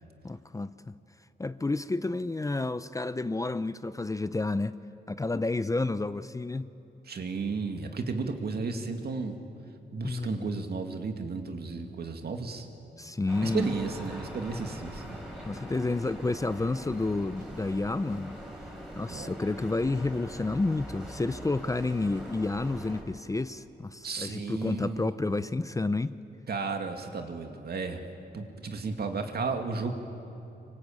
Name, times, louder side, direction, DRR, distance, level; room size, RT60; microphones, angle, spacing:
voice 1, 0.2-0.9 1.4-4.8 5.1-6.7 10.0-10.6 13.0-13.7 15.5-18.3 19.0-26.2, left 2 dB, 20° left, 14 dB, 0.6 m, -30 dB
voice 2, 7.1-9.3 9.9-12.7 13.4-15.2 19.1-19.3 24.0-25.1 26.5-28.0 28.3-29.9, right 4 dB, 65° right, 5 dB, 2.3 m, -33 dB
sound 1, 13.3-23.0, equal, 5° right, 5.6 m, -43 dB
27.0 x 23.5 x 8.8 m, 2.8 s
wide cardioid pair, 120°, 17 cm